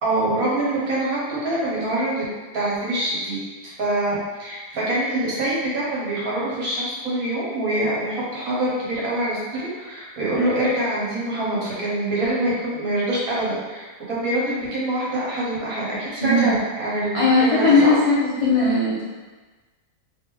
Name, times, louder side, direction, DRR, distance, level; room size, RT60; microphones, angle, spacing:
voice 1, 0.0-2.2 2.5-3.4 3.6-17.9, right 1 dB, 60° right, -6 dB, 1.4 m, -25 dB
voice 2, 16.2-16.5 17.1-19.0, left 3 dB, 40° left, -10 dB, 0.5 m, -18 dB
3.3 x 3.1 x 3.4 m, 1.3 s
omnidirectional pair, 1.7 m